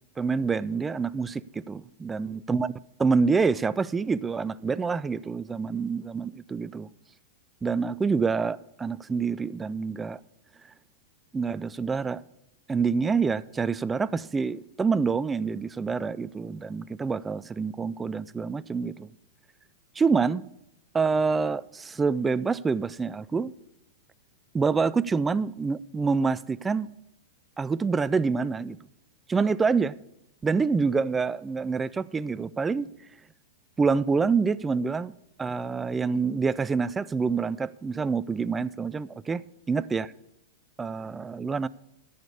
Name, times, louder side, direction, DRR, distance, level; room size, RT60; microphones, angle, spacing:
voice 1, 0.2-2.7 3.0-6.9 7.6-10.2 11.3-12.2 12.7-19.1 20.0-20.4 20.9-23.5 24.5-26.9 27.6-28.8 29.3-29.9 30.4-32.9 33.8-35.1 35.4-40.1 40.8-41.7, right 5 dB, 15° right, 0.3 m, -27 dB
13.5 x 5.1 x 8.4 m
hypercardioid pair, 125°, 0 cm